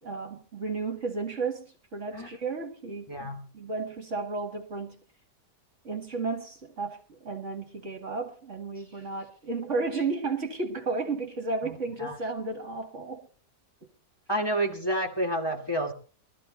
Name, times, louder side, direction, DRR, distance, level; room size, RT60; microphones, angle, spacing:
voice 1, 0.0-1.7 1.9-5.0 5.8-13.3, right 3 dB, 45° right, 2.0 m, -33 dB
voice 2, 3.1-3.4 11.6-12.2 14.3-15.9, right 1 dB, 15° left, 2.2 m, -29 dB
22.5 x 13.5 x 2.8 m
omnidirectional pair, 1.8 m